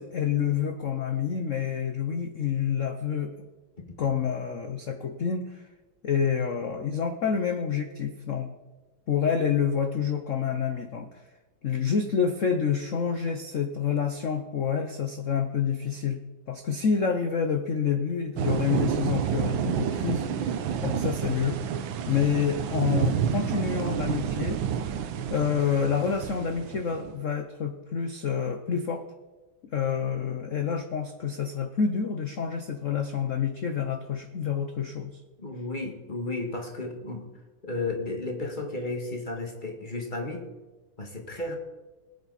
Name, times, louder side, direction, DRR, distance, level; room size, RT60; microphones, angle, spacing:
voice 1, 0.0-3.3 4.0-5.6 6.0-8.5 9.1-11.1 11.6-16.2 16.5-20.5 20.8-21.6 22.1-24.6 25.3-29.0 29.7-35.2, left 7 dB, 70° left, 7 dB, 0.7 m, -28 dB
sound 1, 18.4-27.2, right 8 dB, 70° right, 1.5 m, -29 dB
voice 2, 35.4-37.2 37.6-40.5 41.0-41.6, left 2 dB, 25° left, 2 dB, 1.8 m, -33 dB
20.0 x 8.6 x 4.2 m, 1.2 s
omnidirectional pair, 2.4 m